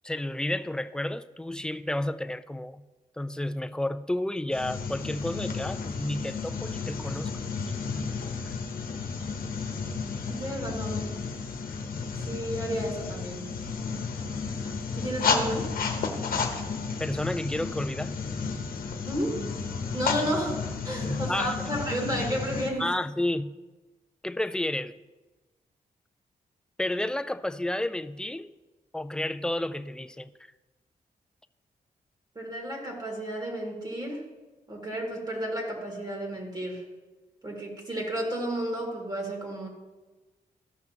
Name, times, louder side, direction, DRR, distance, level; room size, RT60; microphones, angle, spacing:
voice 1, 0.0-2.8 3.2-8.1 8.4-8.5 17.0-18.1 21.0-21.6 22.8-23.5 24.2-25.0 26.8-28.5 28.9-30.3, left 1 dB, 5° left, 11 dB, 0.3 m, -31 dB
sound 1, 4.5-22.7, left 5 dB, 80° left, 1.0 m, -32 dB
voice 2, 10.3-11.1 12.3-13.5 15.0-15.7 19.0-19.4 19.9-22.9 32.3-34.2 34.7-36.8 37.4-39.7, equal, 25° right, -1 dB, 2.4 m, -32 dB
14.0 x 5.9 x 2.9 m, 1.2 s
cardioid pair, 90°, 15 cm